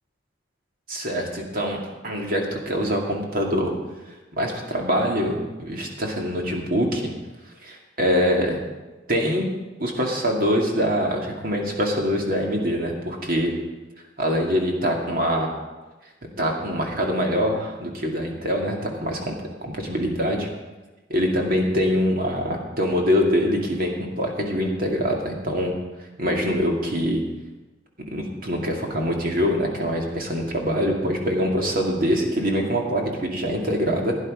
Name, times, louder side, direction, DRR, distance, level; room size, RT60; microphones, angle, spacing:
voice 1, 0.9-3.7 4.4-7.1 7.6-8.6 9.1-9.5 9.8-13.5 14.2-15.5 16.4-20.5 21.1-25.7 26.2-27.2 28.1-34.1, equal, 50° right, 1 dB, 2.4 m, -24 dB
16.5 x 9.8 x 5.1 m, 1.2 s
head